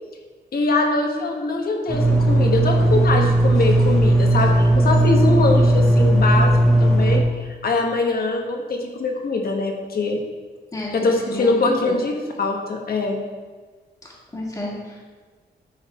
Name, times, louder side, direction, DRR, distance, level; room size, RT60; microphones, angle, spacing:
voice 1, 0.5-6.5 6.8-10.2 10.9-12.1 12.4-13.2, left 3 dB, 60° left, 2 dB, 1.2 m, -23 dB
sound 1, 1.9-7.2, right 1 dB, ahead, 1.4 m, -16 dB
voice 2, 10.7-12.0 14.0-15.0, left 1 dB, 20° left, -4 dB, 1.7 m, -31 dB
9.9 x 4.0 x 4.2 m, 1.4 s
wide cardioid pair, 125°, 18 cm